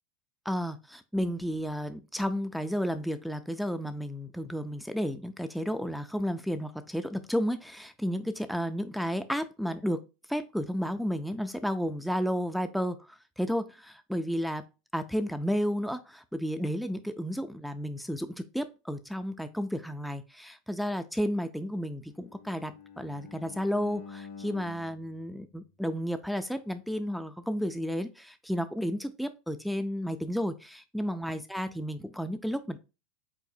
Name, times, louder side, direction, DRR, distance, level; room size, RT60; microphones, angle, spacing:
voice 1, 0.5-10.0 10.3-14.6 14.9-22.7 23.0-32.8, equal, ahead, 8 dB, 0.4 m, -32 dB
Bowed string instrument, 22.1-26.2, left 5 dB, 70° left, 1.9 m, -48 dB
4.7 x 3.9 x 2.7 m, 0.29 s
supercardioid pair, 115°, 0 cm